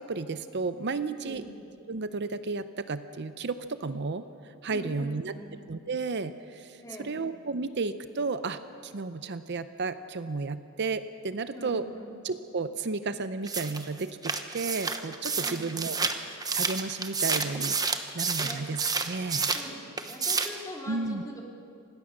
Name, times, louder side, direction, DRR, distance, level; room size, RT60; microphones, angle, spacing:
voice 1, 0.0-1.4 1.9-5.3 5.7-11.8 12.2-17.8 18.1-19.5 20.9-21.2, right 4 dB, 55° right, 11 dB, 0.6 m, -33 dB
voice 2, 1.2-1.6 4.7-5.6 6.8-7.2 11.5-12.1 15.4-15.7 18.4-18.6 19.5-21.4, left 1 dB, 15° left, -1 dB, 2.9 m, -43 dB
sound 1, 13.5-19.7 20.0-20.6, right 4 dB, 20° right, 1.0 m, -30 dB
26.5 x 18.5 x 6.5 m, 2.5 s
head